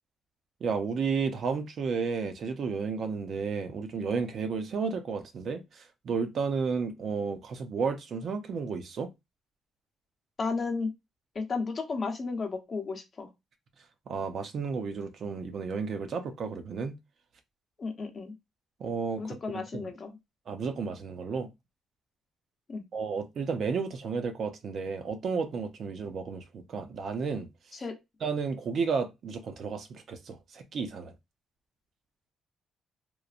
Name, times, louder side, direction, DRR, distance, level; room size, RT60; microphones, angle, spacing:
voice 1, 0.6-9.1 14.1-17.0 18.8-19.9 20.5-21.5 22.9-27.5 28.2-31.1, right 5 dB, 60° right, 0.5 m, -32 dB
voice 2, 10.4-10.9 11.3-13.3 17.8-18.3 19.2-20.2 22.7-22.8 27.8-28.0, left 4 dB, 40° left, 0.7 m, -33 dB
3.0 x 2.1 x 2.4 m
cardioid pair, 90°, 0 cm